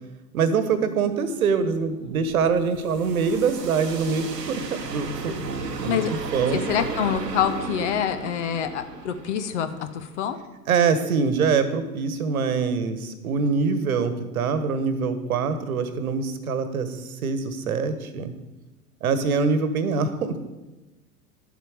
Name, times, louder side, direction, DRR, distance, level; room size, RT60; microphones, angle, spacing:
voice 1, 0.3-4.6 4.9-6.0 6.3-6.6 10.7-16.9 17.2-18.3 19.0-20.4, right 5 dB, 60° right, 11 dB, 1.3 m, -24 dB
sound 1, 1.5-10.4, right 4 dB, 80° right, 0.9 m, -35 dB
voice 2, 6.5-10.4, left 8 dB, 45° left, 10 dB, 0.9 m, -26 dB
11.5 x 7.7 x 5.0 m, 1.1 s
figure-of-eight pair, 90°, 48 cm